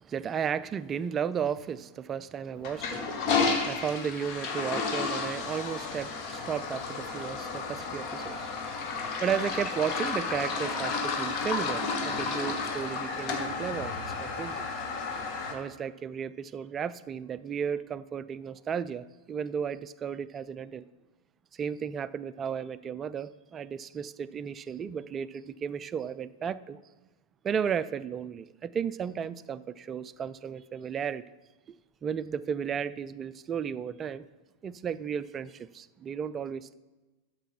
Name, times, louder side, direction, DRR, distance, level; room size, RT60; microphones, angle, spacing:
voice 1, 0.0-8.5 9.2-14.7 15.5-20.9 21.5-26.8 27.4-31.2 32.0-34.2 34.6-36.7, right 7 dB, 25° right, 0.4 m, -34 dB
Toilet flush, 2.6-15.5, left 4 dB, 40° left, 1.4 m, -32 dB
12.5 x 6.8 x 4.5 m
figure-of-eight pair, 90°, 0 cm